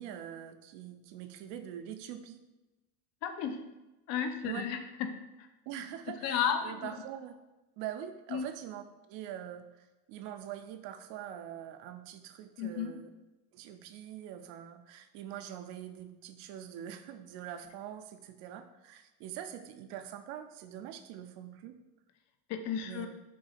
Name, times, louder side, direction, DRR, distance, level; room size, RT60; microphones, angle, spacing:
voice 1, 0.0-2.4 4.4-4.6 5.7-7.4 7.8-13.1 13.5-21.8 22.8-23.1, right 10 dB, 65° right, 8 dB, 0.6 m, -44 dB
voice 2, 3.2-3.6 4.1-4.8 5.4-5.5 6.2-6.9 8.3-8.5 12.6-13.0 22.5-23.1, left 8 dB, 40° left, 7 dB, 0.4 m, -33 dB
3.9 x 2.7 x 4.1 m, 1.1 s
supercardioid pair, 120°, 46 cm